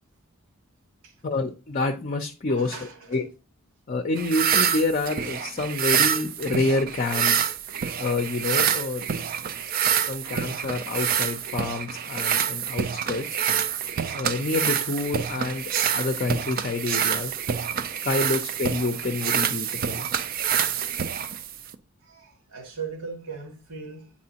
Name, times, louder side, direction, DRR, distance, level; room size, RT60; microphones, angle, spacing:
voice 1, 1.2-2.8 3.1-3.2 3.9-7.4 8.0-9.0 9.6-9.7 10.1-13.3 14.1-17.3 18.0-20.1, left 2 dB, 40° left, 0.5 m, -28 dB
voice 2, 2.5-3.2 13.5-13.7 19.7-19.8 22.0-24.1, right 5 dB, 85° right, 2.0 m, -39 dB
sound 1, 4.2-21.7, right 8 dB, 40° right, 0.3 m, -27 dB
8.5 x 4.2 x 2.8 m
head